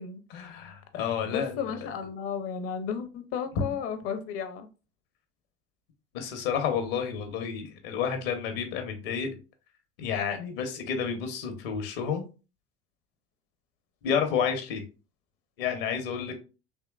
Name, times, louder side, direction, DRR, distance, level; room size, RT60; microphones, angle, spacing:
voice 1, 0.3-1.9 6.1-9.3 10.0-12.3 14.0-14.8 15.6-16.3, left 7 dB, 65° left, 0.9 m, -30 dB
voice 2, 1.2-4.7, left 7 dB, 50° left, 0.7 m, -33 dB
3.6 x 3.1 x 2.4 m
figure-of-eight pair, 65°, 30 cm